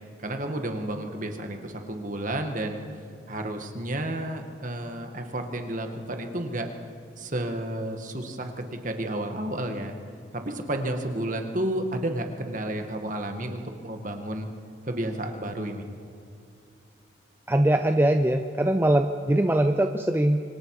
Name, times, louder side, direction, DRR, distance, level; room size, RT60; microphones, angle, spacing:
voice 1, 0.2-2.8 3.3-6.7 7.2-9.9 10.3-14.5 14.8-15.9, right 1 dB, 40° right, 4 dB, 1.8 m, -31 dB
voice 2, 17.5-20.4, right 1 dB, 10° right, 6 dB, 0.6 m, -22 dB
26.0 x 25.0 x 4.9 m, 2.5 s
head